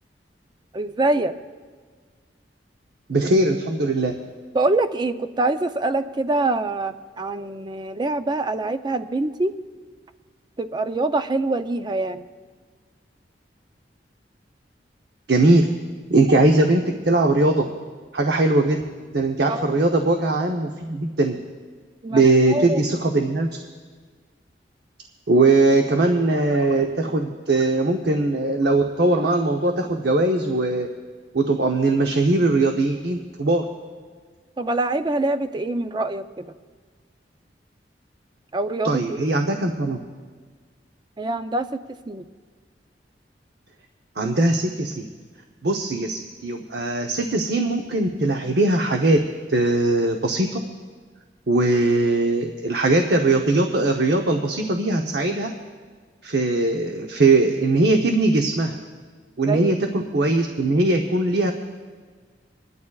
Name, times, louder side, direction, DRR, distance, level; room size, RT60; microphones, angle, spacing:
voice 1, 0.7-1.3 4.5-9.5 10.6-12.3 19.5-19.8 22.0-22.8 34.6-36.5 38.5-39.4 41.2-42.2 59.5-59.8, right 2 dB, 25° right, 10 dB, 0.4 m, -25 dB
voice 2, 3.1-4.1 15.3-15.7 16.1-17.6 18.1-18.8 19.1-21.3 22.1-23.5 25.3-30.9 31.3-33.6 38.8-40.0 44.2-45.1 45.6-49.2 49.5-50.5 51.5-55.5 56.2-58.8 59.4-61.5, right 2 dB, 65° right, 3 dB, 0.8 m, -20 dB
27.0 x 11.0 x 2.3 m, 1.5 s
head